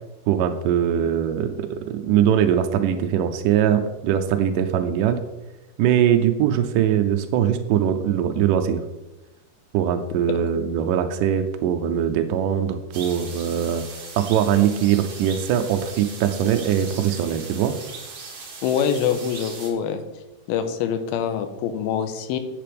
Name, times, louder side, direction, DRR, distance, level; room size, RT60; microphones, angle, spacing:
voice 1, 0.3-5.2 5.8-8.8 9.7-13.8 14.2-17.7, right 9 dB, 85° right, 6 dB, 1.9 m, -21 dB
sound 1, 12.9-19.7, right 4 dB, 50° right, 1.6 m, -39 dB
voice 2, 18.6-20.0 20.5-22.4, left 8 dB, 85° left, 8 dB, 2.5 m, -24 dB
9.9 x 7.7 x 3.4 m, 1.0 s
omnidirectional pair, 4.3 m